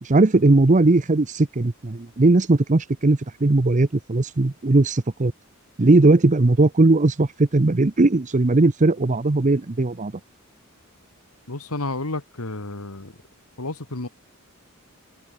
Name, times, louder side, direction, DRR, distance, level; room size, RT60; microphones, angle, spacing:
voice 1, 0.0-5.3 5.8-10.1, right 2 dB, 35° right, 0.8 m, -18 dB
voice 2, 11.5-13.1 13.6-14.1, left 2 dB, 90° left, 2.4 m, -31 dB
open air
head